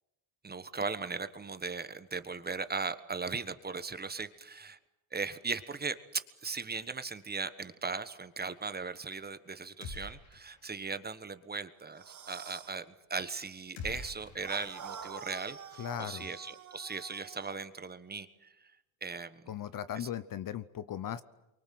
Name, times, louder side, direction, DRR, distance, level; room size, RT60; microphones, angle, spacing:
voice 1, 0.4-4.8 5.1-18.7 19.0-19.4 19.9-20.1, right 4 dB, 20° right, 12 dB, 1.3 m, -38 dB
sound 1, 9.8-10.7 11.0-11.1 13.8-15.1, left 4 dB, 65° left, 4.1 m, -45 dB
sound 2, 11.9-12.8 14.4-17.6, right 7 dB, 35° right, 1.8 m, -47 dB
voice 2, 15.8-16.3 19.5-21.2, left 10 dB, 40° left, 15 dB, 0.9 m, -38 dB
28.5 x 24.0 x 7.7 m, 0.95 s
cardioid pair, 120°, 50 cm